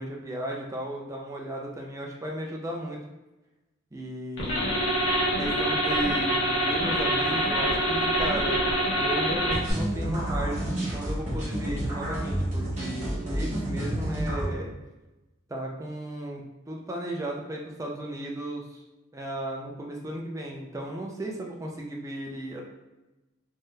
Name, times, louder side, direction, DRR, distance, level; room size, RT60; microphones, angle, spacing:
voice 1, 0.0-3.0 3.9-4.8 5.4-14.7 15.5-18.8 19.1-22.6, right 1 dB, 15° right, -1 dB, 0.3 m, -35 dB
sound 1, 4.4-9.7, equal, 75° left, 0.8 m, -25 dB
sound 2, 9.5-14.5, right 1 dB, 35° right, 1.0 m, -30 dB
3.4 x 2.7 x 2.2 m, 1.0 s
head